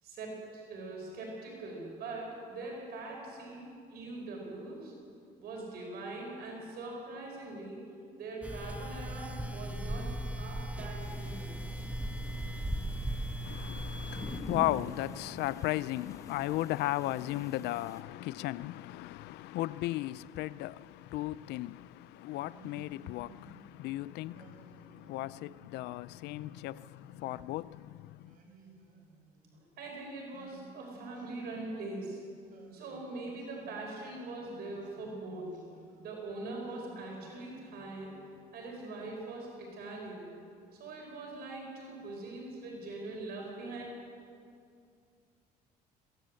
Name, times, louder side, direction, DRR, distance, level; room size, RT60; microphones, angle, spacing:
voice 1, 0.0-4.9 5.4-7.8 8.2-11.5 29.5-32.2 32.7-35.6 36.0-38.1 38.5-40.3 40.8-43.8, right 2 dB, 70° right, 5.2 m, -42 dB
sound 1, 8.4-14.4, right 1 dB, 10° right, 1.1 m, -37 dB
sound 2, 11.0-18.0, left 2 dB, 20° left, 1.6 m, -47 dB
voice 2, 13.4-28.4, left 16 dB, 80° left, 0.5 m, -36 dB
Singing, 22.2-23.7 24.3-25.7 26.3-27.6 28.2-29.8 30.3-32.1 32.5-34.1 34.6-36.3 36.7-38.3, right 3 dB, 55° right, 5.6 m, -58 dB
22.0 x 17.5 x 7.7 m
cardioid pair, 110°, 17 cm